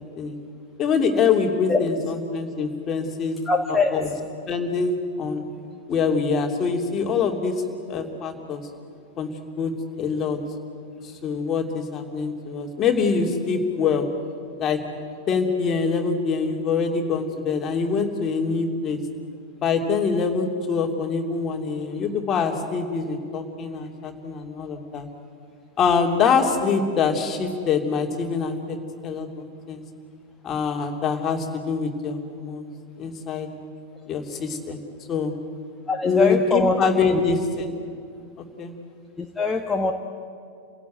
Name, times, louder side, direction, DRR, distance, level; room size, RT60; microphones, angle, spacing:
voice 1, 0.8-3.4 3.9-4.1 4.5-5.4 5.9-7.6 7.9-8.6 9.2-9.3 9.6-9.7 10.0-10.4 11.0-14.1 14.6-14.8 15.3-19.0 19.6-25.1 25.8-28.8 29.0-29.8 30.4-32.7 33.0-33.5 34.1-34.8 35.1-35.3 36.0-37.7 38.6-38.7, left 5 dB, 30° left, 4 dB, 2.9 m, -24 dB
voice 2, 3.5-3.9 35.9-36.8 37.1-37.2 39.2-39.9, left 3 dB, 10° left, 2 dB, 1.3 m, -22 dB
29.0 x 16.5 x 9.3 m, 2.4 s
figure-of-eight pair, 90°, 0 cm